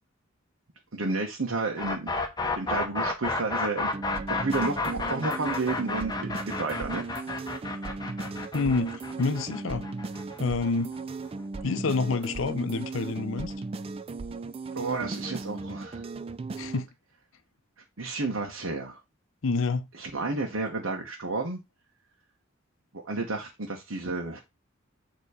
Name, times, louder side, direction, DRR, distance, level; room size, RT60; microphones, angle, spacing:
voice 1, 0.9-2.2 2.6-3.9 4.3-7.1 14.7-16.0 18.0-19.0 19.9-21.6 22.9-24.4, right 3 dB, 75° right, 1.0 m, -31 dB
sound 1, 1.8-11.6, left 3 dB, 20° left, 0.9 m, -32 dB
sound 2, 3.9-16.8, right 3 dB, 30° right, 0.3 m, -37 dB
voice 2, 8.5-9.9 10.4-10.9 11.6-13.5 16.6-16.9 19.4-19.9, left 4 dB, 70° left, 0.6 m, -28 dB
6.9 x 3.0 x 4.8 m
head